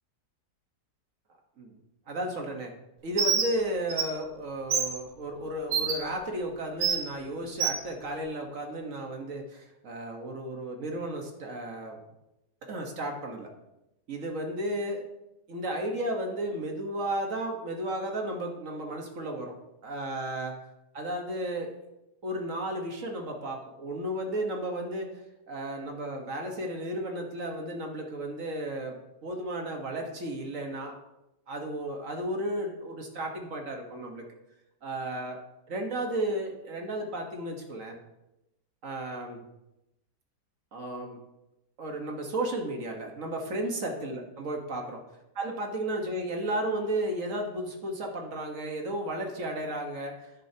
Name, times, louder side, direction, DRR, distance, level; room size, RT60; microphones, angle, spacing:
voice 1, 2.1-2.7 3.0-12.0 12.7-13.5 14.1-15.0 15.5-19.5 19.8-20.6 20.9-21.7 22.2-25.1 25.5-29.0 29.2-31.0 31.5-34.2 34.8-35.4 35.7-38.0 38.8-39.4 40.7-41.2 41.8-45.0 45.3-50.5, right 1 dB, 50° right, 2 dB, 1.6 m, -33 dB
Bird, 3.2-3.5 3.9-4.0 4.7-4.9 5.7-5.9 6.8-7.0 7.6-7.8, right 6 dB, 80° right, 1.8 m, -25 dB
10.5 x 9.9 x 2.8 m, 0.91 s
omnidirectional pair, 1.8 m